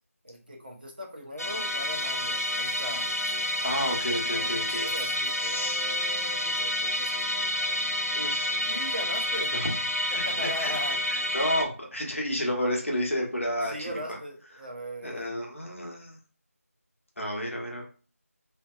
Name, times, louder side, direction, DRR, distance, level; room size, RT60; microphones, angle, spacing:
voice 1, 0.2-3.1 4.3-7.1 8.6-9.6 10.1-11.0 13.6-15.4, equal, 35° right, 0 dB, 0.6 m, -39 dB
Musical instrument, 1.4-11.7, left 1 dB, 75° left, 0.4 m, -29 dB
voice 2, 3.6-4.9 5.4-6.1 8.1-8.6 9.5-9.7 10.1-10.7 11.1-14.2 15.0-16.2 17.2-17.8, equal, 55° left, -1 dB, 0.8 m, -31 dB
Bell / Doorbell, 4.7-6.5, right 2 dB, 80° right, 0.9 m, -51 dB
2.7 x 2.1 x 2.3 m, 0.37 s
figure-of-eight pair, 170°, 8 cm